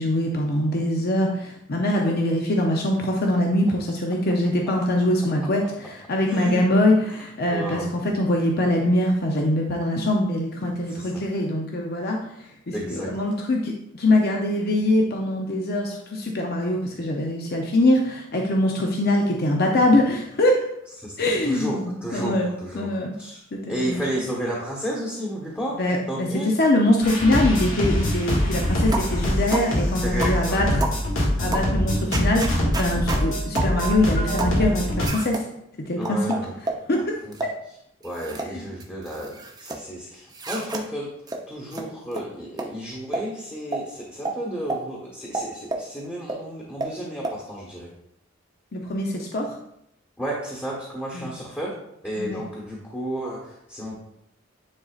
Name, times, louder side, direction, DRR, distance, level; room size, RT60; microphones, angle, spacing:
voice 1, 0.0-12.2 12.7-20.6 21.2-23.2 23.5-24.0 25.8-26.3 26.6-30.7 31.4-35.4 35.9-36.2 36.9-37.2 37.4-37.5 38.5-38.7 48.7-49.6 51.1-51.3 52.2-52.4, left 1 dB, 50° left, 1 dB, 0.7 m, -23 dB
voice 2, 6.2-6.6 7.1-8.2 10.9-11.2 12.7-13.1 21.0-21.1 21.4-25.8 26.1-26.5 29.9-30.6 36.0-36.6 36.9-37.3 37.7-37.8 38.0-41.1 41.5-47.9 50.2-51.7 52.0-54.0, right 1 dB, 10° left, -5 dB, 1.2 m, -32 dB
sound 1, 27.0-35.1, left 1 dB, 80° left, 2.1 m, -24 dB
sound 2, 28.9-29.1 29.5-29.7 30.2-30.4 30.8-31.0 31.5-31.7 32.1-33.2 33.5-33.7 34.4-34.6 35.0-35.4 36.0-36.8 37.3-37.5 38.0-38.5 38.8-39.8 40.3-40.8 41.3-41.4 41.7-41.8 42.1-42.2 42.6-42.7 43.1-43.3 43.7-43.8 44.2-44.4 44.7-44.8 45.3-45.9 46.3-46.4 46.8-46.9 47.2-47.4, right 2 dB, 20° right, 0.7 m, -29 dB
9.7 x 4.0 x 2.4 m, 0.79 s
head